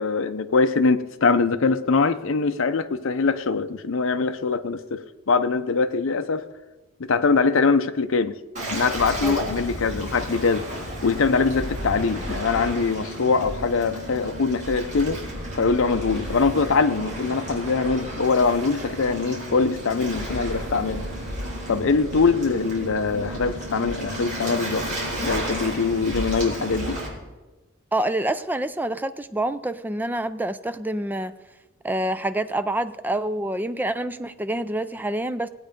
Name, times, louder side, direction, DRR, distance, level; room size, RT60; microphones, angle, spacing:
voice 1, 0.0-6.4 7.1-8.4 8.7-10.7 11.0-15.2 15.5-21.1 21.7-24.9 25.2-27.0, left 4 dB, 60° left, 0.6 m, -23 dB
Waves surf, 8.5-27.1, equal, 35° right, 3.8 m, -32 dB
voice 2, 27.9-31.3 31.8-35.5, right 1 dB, 10° right, 0.3 m, -27 dB
17.5 x 8.5 x 5.2 m
head